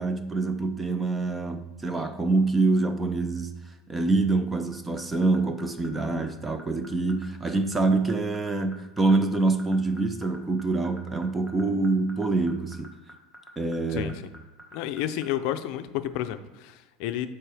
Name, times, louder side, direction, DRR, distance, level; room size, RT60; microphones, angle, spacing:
voice 1, 0.0-3.5 3.9-12.9 13.6-14.1, right 3 dB, 10° right, 0.5 m, -25 dB
sound 1, 4.7-15.3, right 1 dB, 10° left, 1.0 m, -46 dB
voice 2, 13.9-14.2 14.7-17.3, left 12 dB, 60° left, 0.5 m, -31 dB
7.5 x 4.5 x 3.4 m
supercardioid pair, 150°, 0 cm